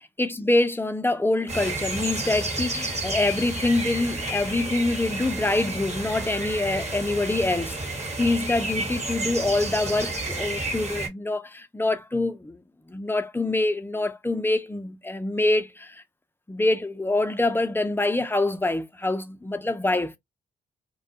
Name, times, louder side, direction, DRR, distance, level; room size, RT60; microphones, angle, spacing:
voice 1, 0.2-12.6 12.9-16.0 16.5-20.1, left 2 dB, 10° left, 0.5 m, -25 dB
sound 1, 1.5-11.1, right 2 dB, 35° right, 1.1 m, -31 dB
2.2 x 2.2 x 2.6 m
supercardioid pair, 45°, 20 cm